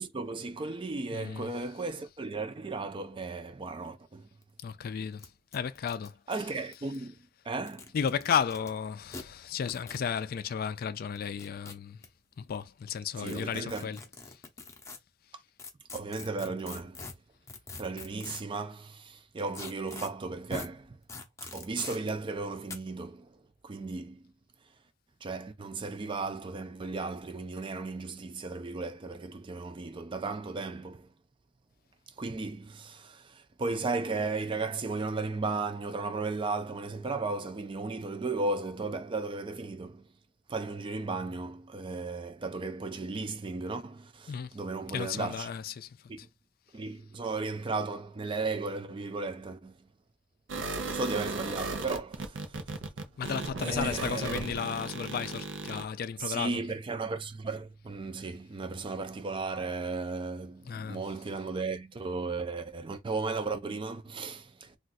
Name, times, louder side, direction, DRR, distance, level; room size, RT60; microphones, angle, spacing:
voice 1, 0.0-4.3 6.3-8.0 13.2-13.9 15.9-17.1 17.8-21.0 21.4-24.3 25.2-31.1 32.2-40.1 40.5-45.5 46.1-46.3 46.7-49.9 50.7-52.6 53.6-54.5 56.2-64.8, right 3 dB, 25° right, 0.4 m, -35 dB
voice 2, 1.1-1.5 4.6-6.2 7.9-12.0 12.4-14.0 14.3-14.4 44.3-44.5 44.9-46.0 53.2-56.6 60.7-61.0, left 7 dB, 55° left, 0.3 m, -33 dB
sound 1, 4.4-4.5 4.7-4.8 5.2-5.3 5.5-7.0 7.6-8.7 9.1-9.2 9.7-10.0 11.1-12.1 13.2-15.0 15.6-18.6 19.5-20.1 20.5-20.7 21.1-22.0 22.7-22.8, left 3 dB, 15° left, 0.6 m, -43 dB
sound 2, 50.5-55.8, right 3 dB, 90° right, 0.6 m, -36 dB
2.5 x 2.3 x 4.0 m
head